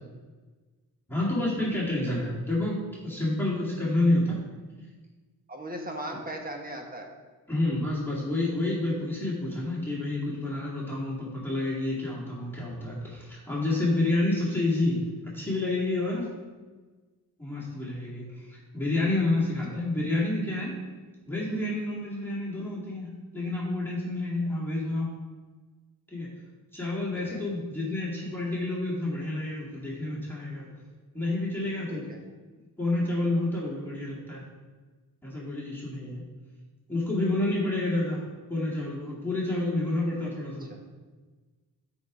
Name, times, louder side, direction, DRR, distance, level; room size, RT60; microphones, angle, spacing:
voice 1, 1.1-4.4 7.5-16.3 17.4-20.8 21.3-25.1 26.1-26.3 26.7-30.7 31.1-32.1 32.8-34.4 35.2-36.2 36.9-38.2 38.5-40.7, left 2 dB, 5° left, -7 dB, 2.3 m, -29 dB
voice 2, 5.5-7.1 19.7-19.8 27.1-27.4 32.1-32.2 40.7-40.8, right 1 dB, 25° right, 2 dB, 1.3 m, -38 dB
8.2 x 3.9 x 5.0 m, 1.3 s
cardioid pair, 85°, 36 cm